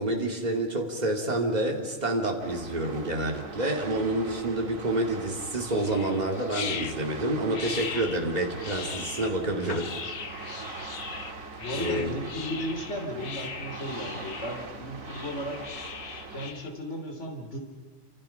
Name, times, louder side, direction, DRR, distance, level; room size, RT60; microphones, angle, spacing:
voice 1, 0.0-10.4 11.7-12.1, right 1 dB, 30° right, 2 dB, 2.7 m, -28 dB
sound 1, 2.4-16.5, right 4 dB, 70° right, 2.2 m, -42 dB
sound 2, 5.7-16.7, left 6 dB, 85° left, 1.7 m, -39 dB
voice 2, 11.6-15.6 16.3-17.6, equal, 55° left, 2 dB, 3.3 m, -35 dB
28.5 x 26.5 x 5.8 m, 1.5 s
omnidirectional pair, 1.5 m